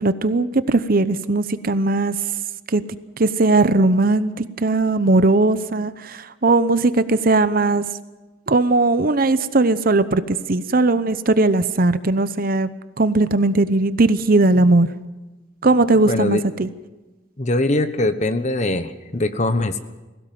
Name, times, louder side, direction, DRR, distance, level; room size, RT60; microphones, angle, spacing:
voice 1, 0.0-2.1 2.7-2.8 3.2-7.8 8.5-12.7 13.0-14.9 15.6-16.7, right 2 dB, 50° right, 14 dB, 0.8 m, -18 dB
voice 2, 16.1-16.4 17.4-19.8, left 2 dB, 40° left, 11 dB, 1.1 m, -22 dB
21.0 x 16.5 x 7.7 m, 1.1 s
head